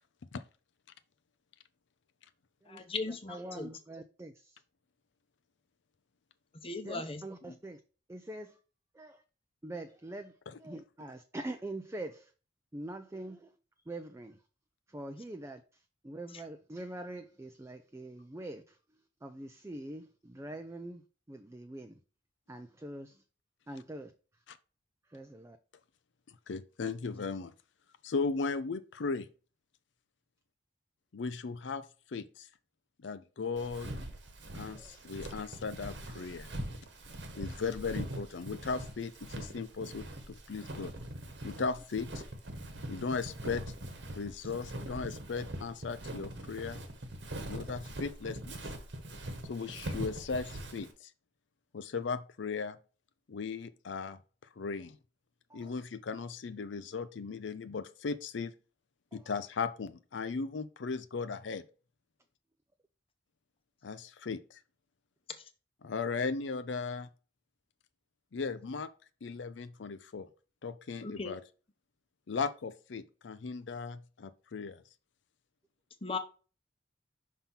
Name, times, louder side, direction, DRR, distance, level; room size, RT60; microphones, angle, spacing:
voice 1, 2.7-3.7 6.6-7.2 7.5-7.6 65.4-65.5 71.0-71.3 76.0-76.2, left 3 dB, 30° left, 0.8 m, -38 dB
voice 2, 3.3-4.6 6.8-7.8 8.1-8.6 8.9-9.2 9.6-12.3 12.7-13.6 13.9-14.4 14.9-22.0 22.5-23.2 23.7-24.4 25.0-25.6 34.7-35.0 37.1-37.4 55.5-55.8 59.1-59.3, right 1 dB, 15° right, 0.5 m, -44 dB
voice 3, 26.5-27.5 28.0-29.3 31.1-32.5 33.0-33.9 34.5-36.5 37.4-40.9 41.4-42.2 42.9-43.6 44.2-46.8 47.5-48.6 49.5-51.1 51.7-52.8 53.3-54.2 54.6-55.0 55.5-58.5 59.1-61.6 63.8-64.6 65.8-67.1 68.3-68.9 69.2-70.3 70.6-71.4 72.3-74.8, left 4 dB, 75° left, 0.5 m, -37 dB
Walk footsteps, 33.6-50.9, right 1 dB, 70° right, 1.2 m, -42 dB
5.8 x 3.6 x 5.6 m
head